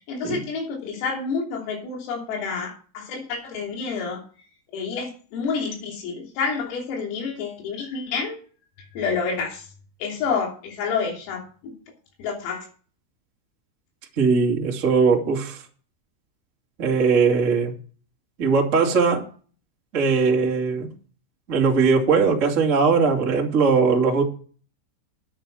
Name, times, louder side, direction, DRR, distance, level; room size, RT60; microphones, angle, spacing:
voice 1, 0.1-4.2 4.7-8.4 8.9-9.7 10.0-11.7 12.2-12.7, left 5 dB, 85° left, 1 dB, 5.7 m, -29 dB
voice 2, 14.2-15.6 16.8-17.7 18.4-19.2 19.9-20.9 21.5-24.2, right 5 dB, 90° right, -1 dB, 0.6 m, -20 dB
10.0 x 9.0 x 6.2 m, 0.41 s
omnidirectional pair, 5.9 m